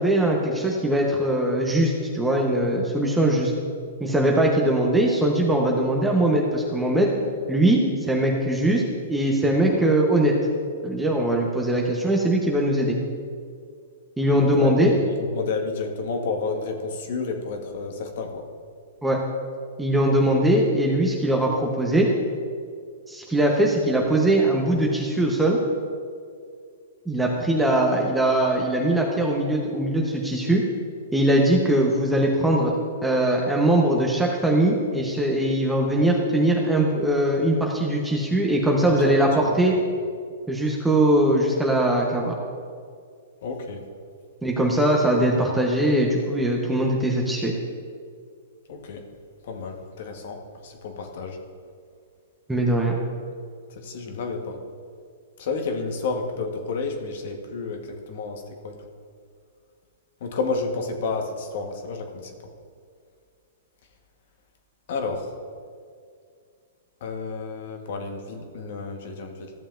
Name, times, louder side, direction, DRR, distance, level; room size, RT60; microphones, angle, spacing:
voice 1, 0.0-3.5 4.0-7.1 7.5-7.8 8.1-8.8 9.1-10.3 10.8-13.0 14.2-14.9 19.0-19.2 19.8-22.1 23.1-25.6 27.1-30.6 31.1-32.7 33.0-39.7 40.5-42.3 44.4-47.5 52.5-52.9, right 1 dB, 5° right, -1 dB, 1.0 m, -21 dB
voice 2, 14.5-18.4 38.8-39.6 43.4-43.8 48.7-49.0 49.4-51.4 53.7-54.6 55.4-58.8 60.2-62.3 64.9-65.3 67.0-69.5, left 4 dB, 60° left, 4 dB, 1.3 m, -31 dB
14.0 x 6.9 x 2.6 m, 2.2 s
hypercardioid pair, 125°, 0 cm